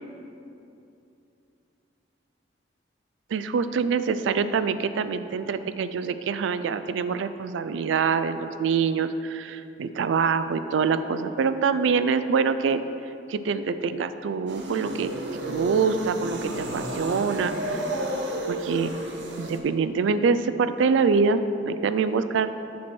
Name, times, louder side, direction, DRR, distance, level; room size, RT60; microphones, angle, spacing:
voice 1, 3.3-12.8 13.3-17.9 18.5-19.0 19.4-22.5, right 5 dB, 90° right, 11 dB, 0.3 m, -25 dB
sound 1, 14.5-19.6, right 1 dB, 70° right, 0.9 m, -31 dB
7.3 x 6.1 x 4.4 m, 2.7 s
head